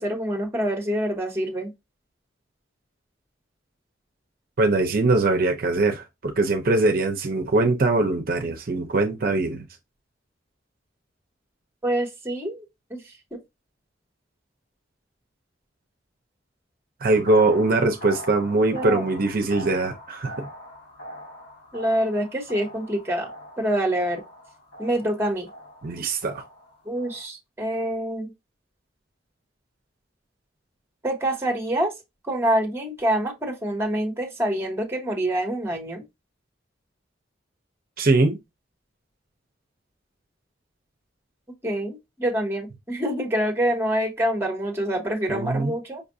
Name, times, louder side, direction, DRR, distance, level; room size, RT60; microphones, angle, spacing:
voice 1, 0.0-1.7 11.8-13.0 18.7-19.0 21.7-23.3 23.6-24.2 24.8-25.5 26.8-28.3 31.0-31.9 32.2-36.0 41.6-46.0, right 1 dB, 15° right, 1.2 m, -26 dB
voice 2, 4.6-9.6 17.0-20.5 25.8-26.4 38.0-38.4 45.3-45.7, right 2 dB, 55° right, 0.6 m, -22 dB
sound 1, 17.1-27.2, equal, 65° left, 1.9 m, -42 dB
5.3 x 2.5 x 2.6 m
head